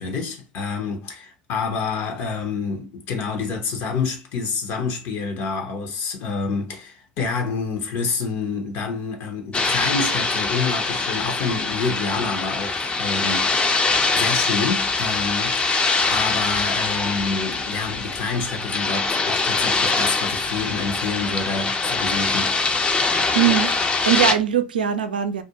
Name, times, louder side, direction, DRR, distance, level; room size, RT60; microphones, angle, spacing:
voice 1, 0.0-13.5 14.1-22.6, left 4 dB, 55° left, 0.7 m, -28 dB
sound 1, 9.5-24.3, left 3 dB, 25° left, 0.5 m, -23 dB
voice 2, 23.3-25.4, right 10 dB, 85° right, 0.4 m, -21 dB
2.4 x 2.2 x 2.8 m
hypercardioid pair, 75°, 5 cm